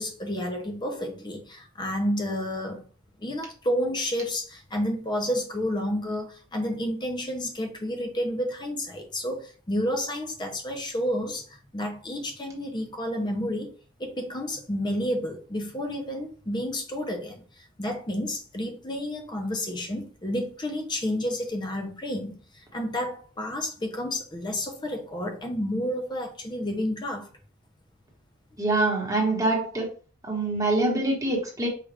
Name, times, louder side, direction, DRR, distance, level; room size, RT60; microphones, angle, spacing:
voice 1, 0.0-2.8 3.2-13.7 14.0-27.3, equal, 20° left, 0.6 m, -30 dB
voice 2, 28.6-29.9 30.2-31.7, right 2 dB, 15° right, 1.3 m, -25 dB
4.8 x 2.5 x 3.3 m
head